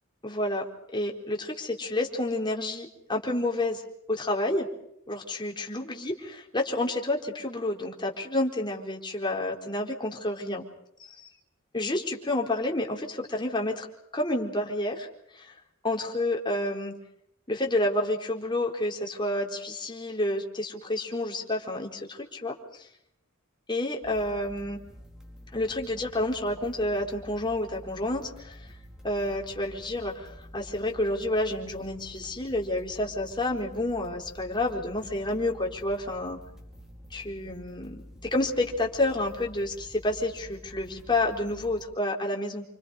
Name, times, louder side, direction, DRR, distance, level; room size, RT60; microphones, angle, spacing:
voice 1, 0.2-0.6 0.9-3.8 4.1-4.7 5.1-10.6 11.7-13.9 14.1-15.1 15.3-15.5 15.8-16.9 17.5-22.9 23.7-24.8 25.5-28.6 29.0-36.4 37.1-37.9 38.3-42.6, left 1 dB, 20° left, 1 dB, 4.2 m, -29 dB
sound 1, 24.0-41.8, equal, 5° right, 4.6 m, -48 dB
29.5 x 27.0 x 5.1 m, 0.74 s
head